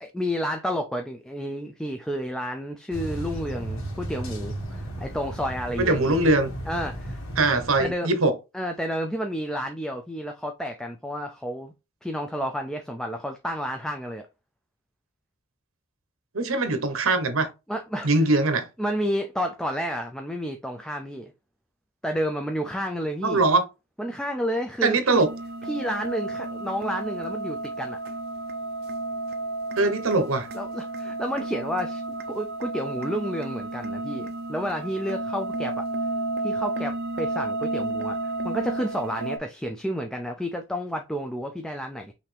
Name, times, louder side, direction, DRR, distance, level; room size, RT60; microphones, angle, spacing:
voice 1, 0.0-6.2 6.7-7.2 7.8-8.1 8.5-11.7 12.0-14.3 17.7-18.3 18.8-21.3 22.0-23.4 24.0-25.3 25.7-28.0 30.5-32.0 32.3-35.8 36.4-42.1, equal, 5° left, 0.4 m, -30 dB
sound 1, 2.9-7.9, right 1 dB, 75° left, 1.6 m, -35 dB
voice 2, 5.8-6.5 7.4-8.3 16.3-17.5 18.0-18.7 23.2-23.6 24.8-25.3 29.8-30.5, right 2 dB, 70° right, 1.0 m, -21 dB
sound 2, 25.2-39.4, right 2 dB, 45° right, 0.5 m, -32 dB
5.7 x 2.7 x 3.3 m
head